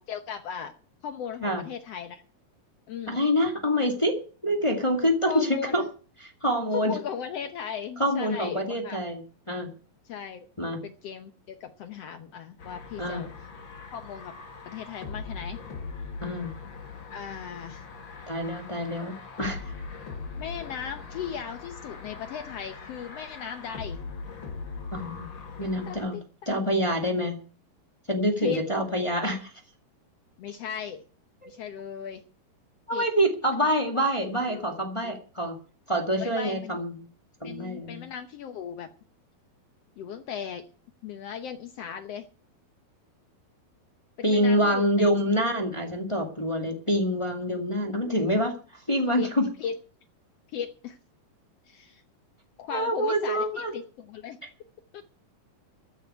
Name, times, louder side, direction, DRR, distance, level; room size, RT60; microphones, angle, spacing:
voice 1, 0.1-0.7 1.0-2.2 2.9-3.2 5.3-5.7 6.7-9.0 10.0-13.3 13.9-14.3 14.6-15.6 17.1-17.8 20.4-24.0 25.9-26.2 26.7-27.1 28.4-28.7 30.4-31.0 31.5-32.2 32.9-33.1 34.2-34.6 35.0-35.2 36.2-36.8 37.4-38.9 40.0-40.7 41.0-42.3 44.2-45.1 49.1-49.3 49.6-49.8 50.5-51.0 51.7-52.0 52.6-54.4 54.9-55.0, left 7 dB, 85° left, 7 dB, 1.4 m, -37 dB
voice 2, 3.1-4.2 4.4-5.8 6.2-6.9 8.0-9.2 9.5-9.7 10.6-10.8 13.0-13.2 16.2-16.5 18.3-19.6 24.9-25.3 25.6-26.2 26.4-27.4 28.1-29.5 31.4-31.5 32.9-35.6 35.9-36.9 37.4-38.1 44.2-48.5 48.9-49.5 52.7-53.7, equal, 15° left, 3 dB, 1.3 m, -26 dB
sound 1, 12.6-26.0, left 4 dB, 40° left, 2.4 m, -41 dB
14.5 x 6.6 x 9.4 m, 0.39 s
omnidirectional pair, 4.3 m